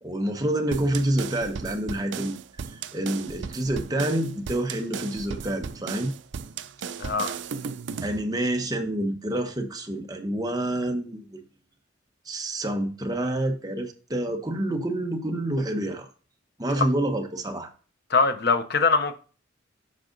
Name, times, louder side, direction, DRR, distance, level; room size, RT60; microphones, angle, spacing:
voice 1, 0.0-2.4 2.9-6.1 8.0-11.4 12.3-16.1 16.6-17.7, right 1 dB, 20° right, 1.0 m, -28 dB
sound 1, 0.7-8.2, right 6 dB, 70° right, 0.4 m, -36 dB
voice 2, 7.0-7.3 18.1-19.1, left 4 dB, 55° left, 0.8 m, -22 dB
7.5 x 5.0 x 3.9 m
head